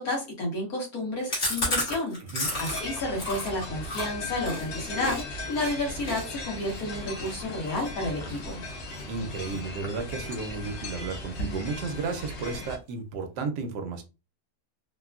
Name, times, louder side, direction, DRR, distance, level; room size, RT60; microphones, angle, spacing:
voice 1, 0.0-2.2 2.6-8.6, left 1 dB, 60° left, -1 dB, 1.5 m, -31 dB
Chewing mastication, 1.3-5.2 5.5-5.7 6.0-9.0 9.4-9.8 10.0-10.9 11.2-11.3 11.6-11.7 12.0-12.6, left 1 dB, 40° left, 1.4 m, -33 dB
sound 1, 2.4-12.8, left 1 dB, 85° left, 1.4 m, -37 dB
voice 2, 9.1-14.0, right 4 dB, 80° right, 6 dB, 1.2 m, -33 dB
3.4 x 2.2 x 2.3 m, 0.30 s
omnidirectional pair, 1.8 m